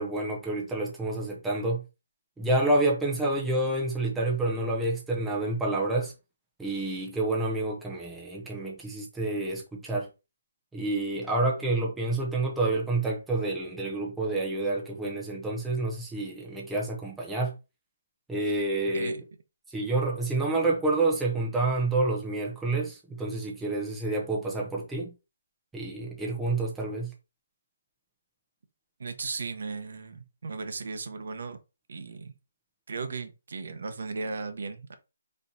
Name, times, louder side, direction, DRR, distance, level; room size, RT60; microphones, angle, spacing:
voice 1, 0.0-1.8 2.4-6.1 6.6-10.1 10.7-17.5 18.3-19.1 19.7-25.1 25.7-27.1, right 2 dB, 5° right, 0.7 m, -28 dB
voice 2, 29.0-31.6 31.9-32.3 32.9-34.9, right 4 dB, 60° right, 0.9 m, -36 dB
4.4 x 4.3 x 2.7 m
hypercardioid pair, 170°, 0 cm